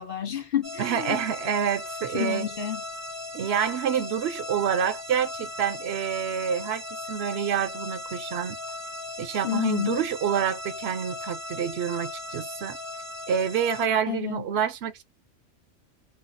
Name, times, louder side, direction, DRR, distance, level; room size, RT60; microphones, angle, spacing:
voice 1, 0.0-1.2 2.1-2.8 9.4-10.0 14.1-14.4, left 10 dB, 55° left, 0.9 m, -29 dB
sound 1, 0.6-13.9, left 2 dB, 20° right, 0.4 m, -38 dB
voice 2, 0.8-2.5 3.3-8.6 9.2-12.8 13.3-15.0, right 8 dB, 70° right, 0.8 m, -27 dB
3.3 x 2.3 x 2.4 m
omnidirectional pair, 1.2 m